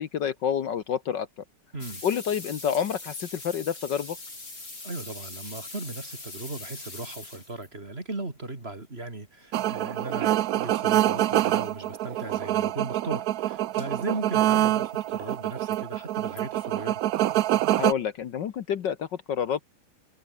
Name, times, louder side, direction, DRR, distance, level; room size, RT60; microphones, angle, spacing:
voice 1, 0.0-1.4 2.0-4.2 17.8-19.6, left 8 dB, 60° left, 1.7 m, -28 dB
voice 2, 1.7-2.0 4.8-17.0, right 2 dB, 30° right, 3.5 m, -37 dB
sound 1, 1.8-7.7 10.5-10.6 10.7-10.8 11.4-11.5 11.7-11.8 12.2-12.4 13.8-14.1 14.6-14.7 15.3-15.8 16.4-16.5, left 2 dB, 40° left, 5.8 m, -42 dB
sound 2, 9.5-17.9, right 13 dB, 75° right, 0.8 m, -26 dB
omnidirectional pair, 2.3 m